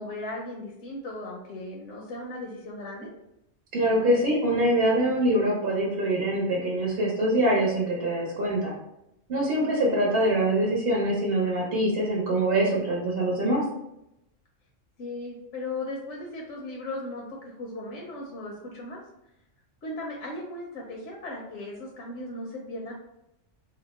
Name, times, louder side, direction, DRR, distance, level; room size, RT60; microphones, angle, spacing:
voice 1, 0.0-3.1 9.6-10.0 15.0-19.0 19.8-22.9, left 2 dB, 70° left, -2 dB, 0.9 m, -37 dB
voice 2, 3.7-8.7 9.3-13.6, right 1 dB, 55° right, -3 dB, 0.9 m, -24 dB
2.8 x 2.1 x 4.0 m, 0.83 s
omnidirectional pair, 1.3 m